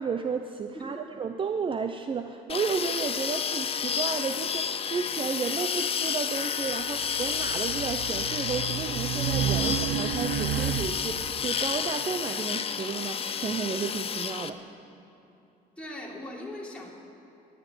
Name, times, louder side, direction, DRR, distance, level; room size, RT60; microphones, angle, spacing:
voice 1, 0.0-14.6, right 5 dB, 30° right, 7 dB, 0.6 m, -32 dB
sound 1, 2.5-14.5, left 7 dB, 35° left, 0.7 m, -31 dB
Race car auto racing, 6.9-11.3, right 11 dB, 80° right, 0.5 m, -31 dB
voice 2, 15.8-16.9, left 1 dB, 5° left, -4 dB, 3.5 m, -40 dB
13.5 x 10.5 x 9.0 m, 2.8 s
cardioid pair, 110°, 17 cm